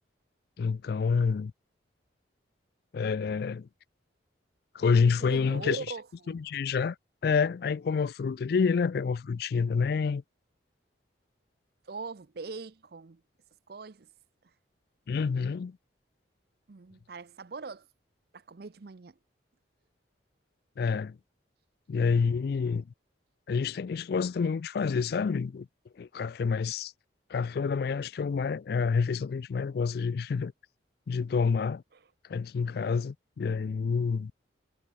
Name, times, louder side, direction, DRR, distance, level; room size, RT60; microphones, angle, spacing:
voice 1, 0.6-1.5 2.9-3.7 4.7-5.9 6.3-7.0 7.2-10.2 15.1-15.8 20.8-21.2 21.9-22.9 23.5-25.7 26.0-26.9 27.3-30.5 31.1-31.8 32.3-34.3, left 5 dB, 55° left, 0.3 m, -28 dB
voice 2, 5.3-6.4 11.9-13.2 13.7-14.1 16.7-17.9 18.3-19.1, right 4 dB, 55° right, 0.6 m, -41 dB
head